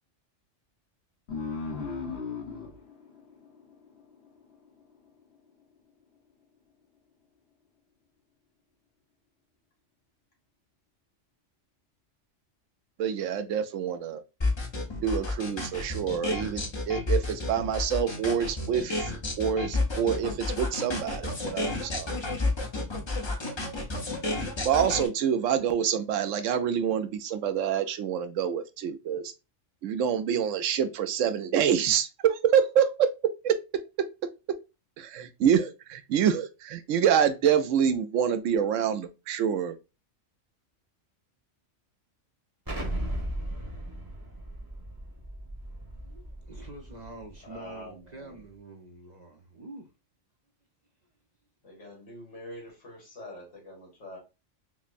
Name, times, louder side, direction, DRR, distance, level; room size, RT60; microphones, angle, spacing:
sound 1, 1.3-4.4, left 4 dB, 55° left, 1.4 m, -37 dB
voice 1, 13.0-14.2 15.0-19.1 19.4-22.1 24.6-29.3 29.8-33.1 33.4-33.6 35.0-39.8, right 8 dB, 85° right, 0.9 m, -26 dB
sound 2, 14.4-25.1, left 2 dB, 25° left, 0.7 m, -30 dB
Explosion, 42.7-47.4, right 1 dB, 20° right, 0.9 m, -36 dB
voice 2, 46.0-49.9, right 2 dB, 45° right, 0.6 m, -46 dB
voice 3, 47.4-48.5 51.6-54.2, left 1 dB, 75° left, 2.0 m, -45 dB
5.8 x 2.0 x 2.4 m
omnidirectional pair, 1.3 m